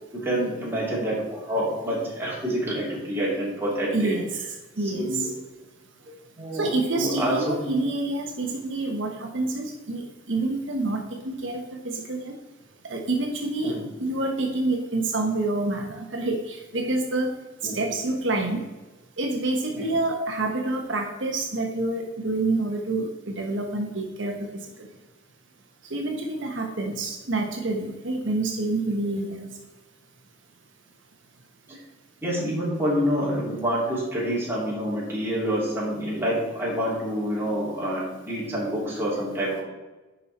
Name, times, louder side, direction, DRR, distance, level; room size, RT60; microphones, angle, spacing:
voice 1, 0.1-4.1 4.8-5.3 6.4-7.7 13.6-13.8 17.6-17.8 19.7-19.9 31.7-31.8 32.2-39.6, equal, 10° right, -5 dB, 3.0 m, -27 dB
voice 2, 3.9-4.3 4.8-5.3 6.5-11.0 11.2-12.3 12.9-13.7 14.0-17.3 17.7-18.6 19.2-24.3 25.9-29.5, right 2 dB, 65° right, 1 dB, 1.1 m, -27 dB
10.0 x 5.5 x 4.2 m, 1.2 s
head